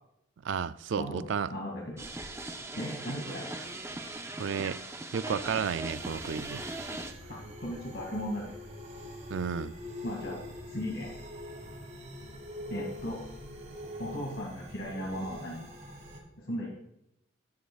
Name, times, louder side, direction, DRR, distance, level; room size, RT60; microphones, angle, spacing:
voice 1, 0.4-1.5 4.4-4.8 5.1-6.6 9.3-9.7, right 6 dB, 65° right, 0.4 m, -32 dB
voice 2, 1.0-2.0 2.7-3.6 7.3-8.5 10.0-10.5 10.7-11.1 12.7-13.2 14.0-15.6 16.4-16.7, equal, 60° left, 2.3 m, -37 dB
sound 1, 2.0-7.1, right 2 dB, 15° right, 0.6 m, -39 dB
sound 2, 5.9-16.2, left 1 dB, 35° right, 1.8 m, -44 dB
13.0 x 11.5 x 2.4 m
head